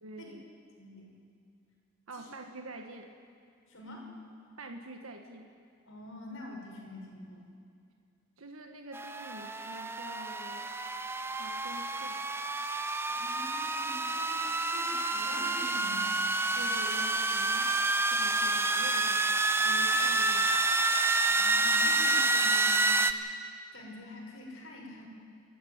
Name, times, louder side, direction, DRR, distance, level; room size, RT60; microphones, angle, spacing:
voice 1, 0.0-0.4 2.1-3.1 4.6-5.5 8.4-10.7 11.3-12.2 16.5-17.8 18.1-20.6, right 2 dB, 90° right, 4 dB, 1.5 m, -46 dB
voice 2, 0.8-1.1 2.1-2.3 3.7-4.1 5.9-7.5 13.1-16.1 21.3-22.8 23.7-25.1, left 2 dB, 70° left, 0 dB, 5.6 m, -46 dB
sound 1, 8.9-23.1, right 2 dB, 10° right, 0.6 m, -28 dB
28.0 x 12.5 x 9.5 m, 2.3 s
head